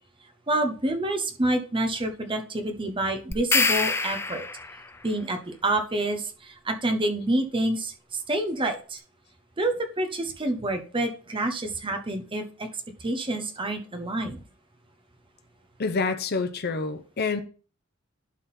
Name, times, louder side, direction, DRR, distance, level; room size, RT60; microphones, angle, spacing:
voice 1, 0.5-4.4 5.0-9.0 9.6-12.7 13.0-14.4, right 1 dB, 25° right, 1.0 m, -28 dB
sound 1, 3.3-4.9, left 3 dB, 10° left, 0.4 m, -25 dB
voice 2, 15.8-17.4, left 4 dB, 50° left, 0.7 m, -27 dB
11.5 x 3.8 x 4.2 m
head